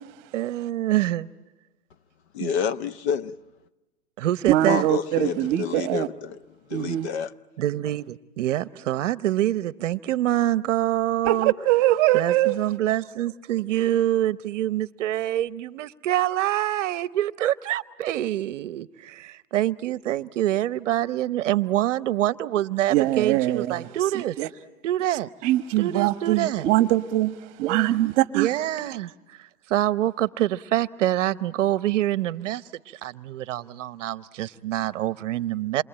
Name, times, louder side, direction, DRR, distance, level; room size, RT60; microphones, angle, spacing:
voice 1, 0.3-1.3 2.4-2.5 4.2-4.9 7.6-11.5 12.1-24.4 24.8-25.3 25.8-26.7 27.6-28.0 28.3-35.8, right 13 dB, 50° right, 0.9 m, -26 dB
voice 2, 2.3-3.3 4.7-6.4 6.7-7.3, left 7 dB, 45° left, 0.9 m, -28 dB
voice 3, 4.5-6.1 6.7-7.1 11.2-12.5 22.9-23.9 24.4-24.5 25.4-28.5, right 15 dB, 30° right, 1.2 m, -22 dB
27.5 x 24.0 x 8.8 m
hypercardioid pair, 140°, 46 cm